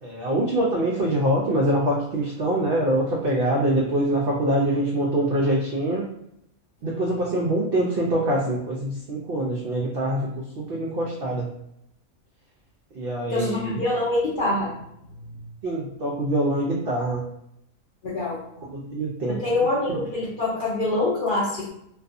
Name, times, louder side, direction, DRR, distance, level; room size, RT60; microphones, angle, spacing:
voice 1, 0.0-6.0 6.8-10.3 10.6-11.5 13.0-13.8 15.6-17.2 18.7-19.4 19.9-20.0, right 1 dB, 75° right, -3 dB, 0.5 m, -24 dB
voice 2, 13.3-14.7 15.0-15.1 18.0-18.4 19.3-21.7, left 2 dB, 60° left, -6 dB, 0.5 m, -25 dB
2.5 x 2.3 x 2.5 m, 0.77 s
omnidirectional pair, 1.5 m